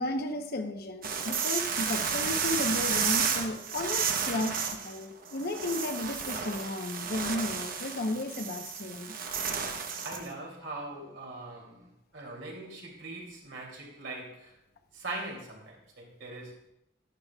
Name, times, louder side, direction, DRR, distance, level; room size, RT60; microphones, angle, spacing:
voice 1, 0.0-9.1, left 2 dB, 55° left, 6 dB, 0.8 m, -34 dB
sound 1, 1.0-10.3, right 6 dB, 50° right, 0.8 m, -32 dB
voice 2, 10.0-14.5 14.9-16.6, right 2 dB, 75° right, -2 dB, 2.8 m, -41 dB
11.5 x 9.6 x 2.3 m, 0.81 s
head